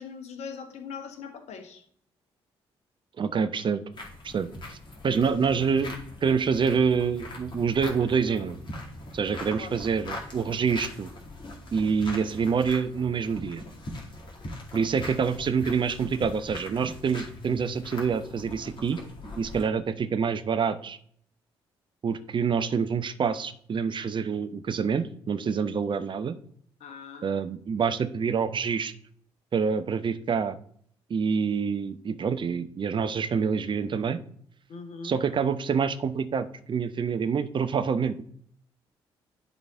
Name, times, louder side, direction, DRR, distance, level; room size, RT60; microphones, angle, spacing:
voice 1, 0.0-1.8 9.6-9.8 26.8-27.3 34.7-35.2, left 5 dB, 55° left, 6 dB, 1.3 m, -41 dB
voice 2, 3.2-3.8 4.2-4.8 5.0-5.9 6.2-8.6 9.1-11.1 11.7-13.6 14.7-19.0 19.4-21.0 22.0-26.3 27.2-28.9 29.5-30.6 31.1-34.2 35.0-38.2, right 6 dB, 40° right, 10 dB, 0.7 m, -26 dB
sound 1, 3.9-19.6, left 1 dB, 35° left, 2.3 m, -41 dB
10.5 x 4.0 x 3.6 m, 0.63 s
figure-of-eight pair, 40°, 13 cm